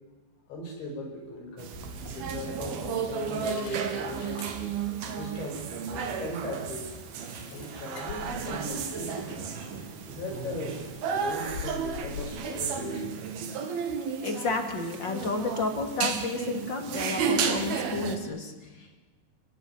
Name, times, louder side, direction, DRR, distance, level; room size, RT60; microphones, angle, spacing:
voice 1, 0.5-1.8 2.1-4.5 5.1-7.0 7.5-9.3 10.1-13.3, left 1 dB, 85° left, 2 dB, 8.4 m, -39 dB
sound 1, 1.3-1.5 2.2-2.8 3.3-5.0 5.3-5.4 5.8-5.9 6.3-6.4 7.3-12.2, left 6 dB, 65° left, 4.7 m, -45 dB
sound 2, 1.6-18.2, right 6 dB, 60° right, 3.9 m, -33 dB
voice 2, 14.2-19.0, left 3 dB, 30° left, 5 dB, 3.1 m, -32 dB
29.5 x 18.5 x 9.8 m, 1.2 s
omnidirectional pair, 5.1 m